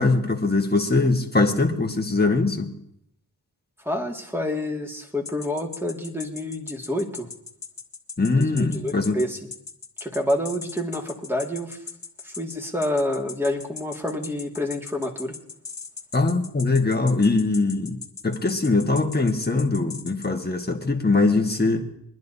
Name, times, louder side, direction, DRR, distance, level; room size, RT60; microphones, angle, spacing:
voice 1, 0.0-2.7 8.2-9.2 16.1-18.0 18.2-21.8, left 3 dB, 25° left, 3 dB, 1.5 m, -22 dB
voice 2, 3.8-7.3 8.3-9.4 10.0-11.8 12.2-15.4, left 1 dB, 5° right, 1 dB, 2.1 m, -28 dB
sound 1, 5.3-20.3, left 5 dB, 45° left, 1.2 m, -38 dB
24.0 x 10.5 x 2.8 m, 0.74 s
cardioid pair, 45°, 40 cm